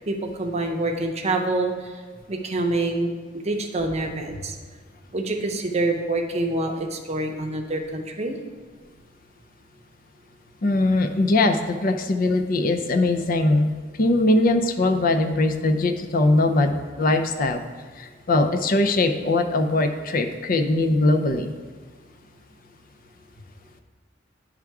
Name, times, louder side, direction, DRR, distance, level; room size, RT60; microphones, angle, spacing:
voice 1, 0.1-2.0 2.3-4.6 5.1-8.4, right 2 dB, 35° right, 3 dB, 0.7 m, -26 dB
voice 2, 10.6-13.7 14.0-17.6 18.0-21.5, left 2 dB, 45° left, 7 dB, 0.5 m, -21 dB
10.5 x 3.5 x 4.7 m, 1.5 s
head